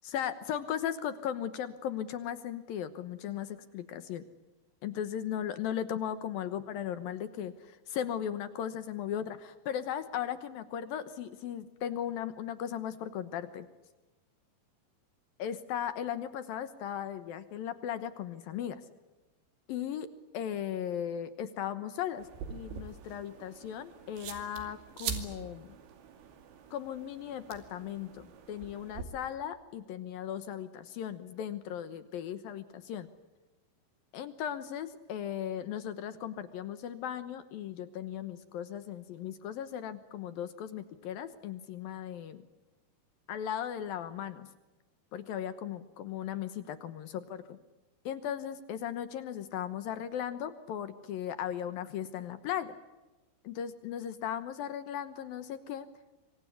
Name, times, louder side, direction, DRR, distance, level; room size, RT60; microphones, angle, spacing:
voice 1, 0.0-4.2 4.8-13.7 15.4-18.8 19.7-20.1 20.3-25.7 26.7-33.1 34.1-42.4 43.3-44.5 45.1-47.6 48.1-52.7 53.4-55.9, left 9 dB, 70° left, 12 dB, 2.5 m, -37 dB
sound 1, 22.2-29.0, right 8 dB, 80° right, 4.8 m, -44 dB
25.5 x 24.5 x 8.2 m, 1.1 s
omnidirectional pair, 5.1 m